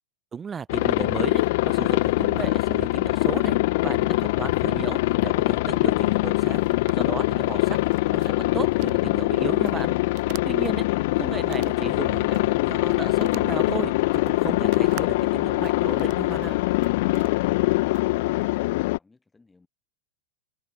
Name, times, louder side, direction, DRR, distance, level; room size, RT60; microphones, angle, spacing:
voice 1, 0.3-10.0 10.4-10.9 11.2-16.6, right 6 dB, 20° right, 0.7 m, -35 dB
Aircraft, 0.7-19.0, left 21 dB, 60° left, 0.5 m, -23 dB
sound 1, 1.2-10.7 11.3-12.6 12.9-18.0, right 35 dB, 55° right, 5.3 m, -47 dB
voice 2, 17.5-19.7, left 3 dB, 10° left, 7.4 m, -58 dB
hypercardioid pair, 100°, 0 cm